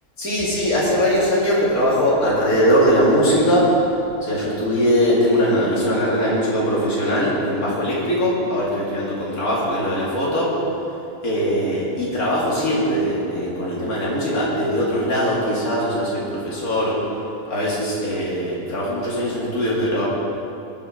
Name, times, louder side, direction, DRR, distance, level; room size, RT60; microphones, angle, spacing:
voice 1, 0.2-3.7 4.2-10.5 11.2-17.0 17.5-20.0, equal, 85° left, -6 dB, 2.8 m, -20 dB
20.5 x 7.2 x 5.0 m, 2.8 s
omnidirectional pair, 1.5 m